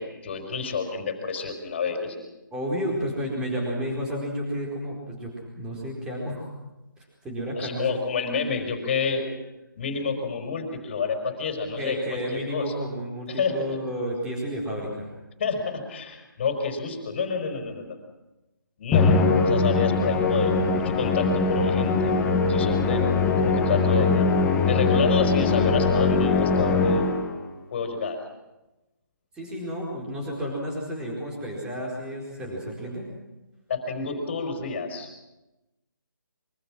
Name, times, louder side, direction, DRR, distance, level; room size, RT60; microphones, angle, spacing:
voice 1, 0.0-2.1 7.5-9.3 9.7-12.9 13.3-13.8 15.4-18.0 18.8-22.1 22.5-23.1 23.4-24.3 24.6-27.1 27.7-28.2 33.7-35.1, left 5 dB, 30° left, 4 dB, 4.6 m, -29 dB
voice 2, 2.5-6.4 7.0-8.0 11.8-15.1 29.3-33.0, equal, 5° right, -2 dB, 4.6 m, -31 dB
Musical instrument, 18.9-27.4, left 4 dB, 10° left, 1.3 m, -22 dB
25.0 x 24.0 x 6.2 m, 0.99 s
hypercardioid pair, 165°, 11 cm